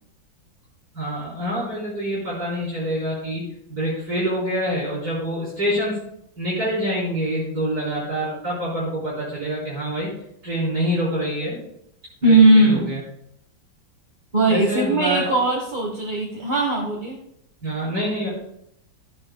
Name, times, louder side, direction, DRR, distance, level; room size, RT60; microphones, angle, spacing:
voice 1, 0.9-3.4 3.7-6.0 6.4-10.1 10.4-11.6 12.2-13.0 14.5-15.3 17.6-18.3, equal, 50° right, -9 dB, 4.7 m, -26 dB
voice 2, 12.2-12.9 14.3-17.2, right 2 dB, 30° right, -1 dB, 1.1 m, -18 dB
13.0 x 10.5 x 2.2 m, 0.75 s
omnidirectional pair, 2.1 m